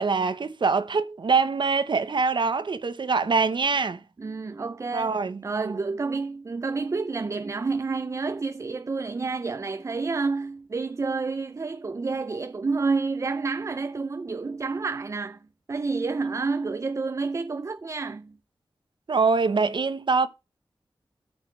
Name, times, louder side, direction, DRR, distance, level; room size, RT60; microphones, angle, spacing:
voice 1, 0.0-4.0 4.9-5.8 19.1-20.3, right 4 dB, 65° right, 0.9 m, -24 dB
voice 2, 4.2-15.4 15.7-18.4, right 4 dB, 35° right, 0.4 m, -29 dB
9.9 x 6.5 x 4.5 m
wide cardioid pair, 105°, 9 cm